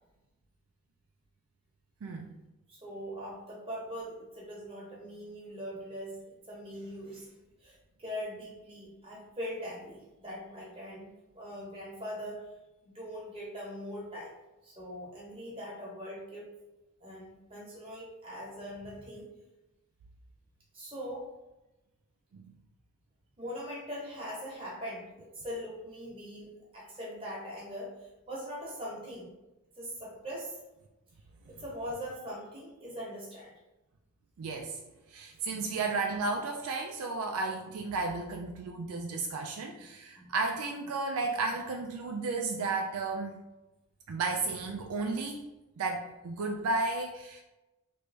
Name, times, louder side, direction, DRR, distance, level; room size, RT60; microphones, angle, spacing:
voice 1, 2.0-2.3 22.3-22.5 34.4-34.8 35.1-43.4 44.1-45.4 45.8-47.4, right 3 dB, 70° right, 2 dB, 0.3 m, -33 dB
voice 2, 2.7-6.2 6.5-7.3 7.6-12.5 12.8-14.3 14.6-16.5 17.0-19.3 20.7-21.3 23.4-29.3 29.8-30.6 31.4-33.5 35.4-35.8 40.2-40.3, equal, 25° right, -5 dB, 1.0 m, -41 dB
3.1 x 2.5 x 3.3 m, 1.0 s
head